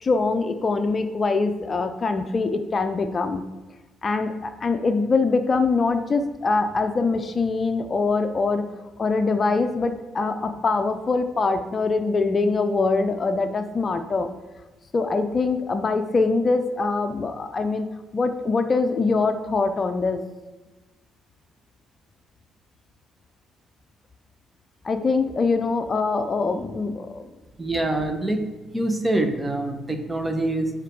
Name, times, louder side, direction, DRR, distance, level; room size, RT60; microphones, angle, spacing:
voice 1, 0.0-3.4 4.0-8.6 9.0-14.3 14.9-17.9 18.1-20.2 24.8-27.3, left 3 dB, 40° left, 8 dB, 0.5 m, -23 dB
voice 2, 27.6-28.4 28.7-30.7, right 1 dB, 20° right, 6 dB, 1.0 m, -25 dB
5.1 x 4.9 x 4.6 m, 1.1 s
hypercardioid pair, 55°, 0 cm